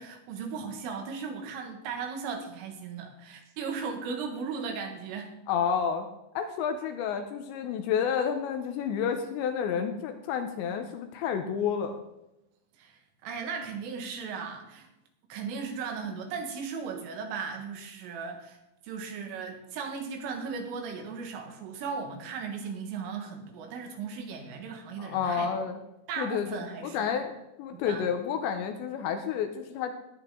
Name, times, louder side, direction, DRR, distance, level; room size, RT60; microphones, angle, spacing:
voice 1, 0.0-5.3 12.8-14.9 15.3-18.6 18.8-25.5 26.1-27.1 27.7-28.1, right 5 dB, 80° right, 3 dB, 4.2 m, -37 dB
voice 2, 5.5-6.1 6.4-12.0 25.0-25.8 26.2-29.9, left 7 dB, 80° left, 6 dB, 2.8 m, -30 dB
19.5 x 8.7 x 3.8 m, 0.92 s
omnidirectional pair, 5.8 m